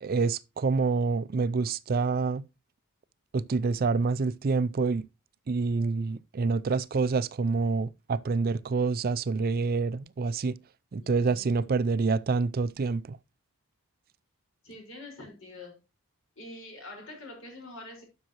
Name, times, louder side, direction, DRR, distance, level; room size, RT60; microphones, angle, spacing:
voice 1, 0.0-2.4 3.3-5.0 5.5-10.6 10.9-13.2, right 4 dB, 40° right, 0.4 m, -27 dB
voice 2, 11.0-11.8 14.6-15.8 16.4-18.0, left 2 dB, 60° left, 4.8 m, -45 dB
12.0 x 6.4 x 3.0 m
head